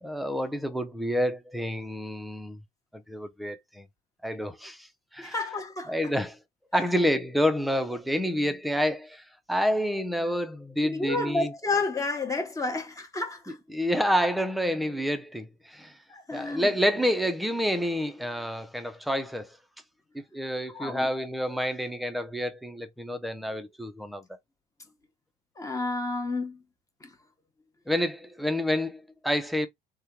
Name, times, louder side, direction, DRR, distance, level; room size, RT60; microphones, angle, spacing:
voice 1, 0.0-2.6 2.9-3.9 4.2-5.5 5.9-6.4 6.7-11.5 13.5-16.0 16.3-19.6 20.1-24.2 27.9-29.7, equal, ahead, 0.5 m, -28 dB
voice 2, 5.2-5.9 6.7-6.8 10.8-13.6 16.1-16.7 20.7-21.3 25.6-26.6 27.0-27.1, left 3 dB, 20° left, 0.9 m, -31 dB
3.5 x 2.2 x 2.9 m
cardioid pair, 115°, 17 cm